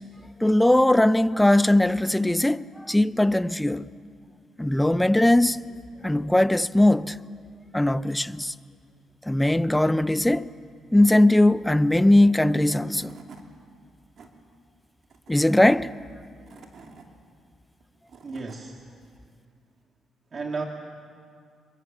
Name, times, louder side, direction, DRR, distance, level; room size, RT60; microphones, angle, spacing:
voice 1, 0.4-3.8 4.6-5.6 6.0-7.2 7.7-8.5 9.3-10.5 10.9-13.1 15.3-15.9, left 1 dB, 5° left, 0.6 m, -20 dB
Tools / Wood, 12.5-12.6 12.9-13.5 13.9-14.3 15.0-15.6 16.2-17.1 17.8-18.6, right 5 dB, 55° right, 2.8 m, -49 dB
voice 2, 18.2-18.8 20.3-20.6, right 4 dB, 40° right, 1.8 m, -33 dB
26.5 x 23.5 x 7.2 m
cardioid pair, 90°, 0 cm